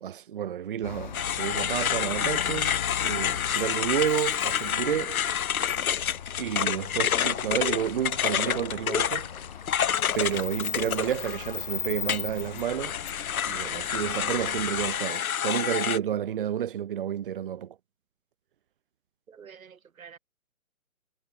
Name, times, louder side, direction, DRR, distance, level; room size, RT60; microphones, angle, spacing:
voice 1, 0.0-5.2 6.4-9.3 10.1-13.0 13.5-17.8, right 10 dB, 40° right, 1.0 m, -30 dB
sound 1, 0.8-15.0, left 8 dB, 35° left, 0.7 m, -39 dB
sound 2, 1.1-11.6 12.1-16.0, left 9 dB, 80° left, 0.6 m, -28 dB
voice 2, 19.3-20.2, right 7 dB, 75° right, 0.9 m, -48 dB
figure-of-eight pair, 145°, 42 cm